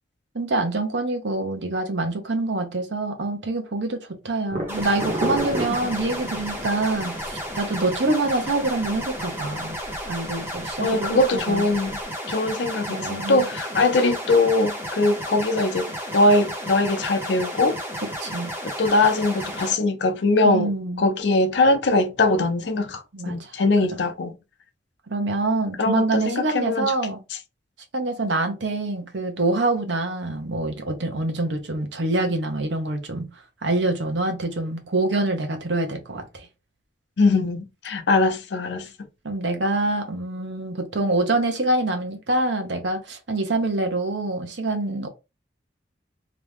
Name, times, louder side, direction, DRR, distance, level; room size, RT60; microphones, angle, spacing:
voice 1, 0.3-9.8 10.0-11.7 12.9-13.5 18.2-18.5 20.4-21.1 23.1-23.5 25.1-27.2 27.9-33.3 33.6-36.5 39.2-45.1, right 2 dB, 75° right, 0.9 m, -25 dB
sound 1, 4.5-12.0, right 1 dB, 40° right, 1.3 m, -34 dB
sound 2, 4.7-19.7, equal, 15° right, 1.1 m, -33 dB
voice 2, 10.8-12.0 12.3-17.8 18.6-20.7 21.0-24.3 25.8-26.9 37.2-38.9, left 2 dB, 70° left, 0.6 m, -21 dB
3.0 x 2.5 x 3.4 m
head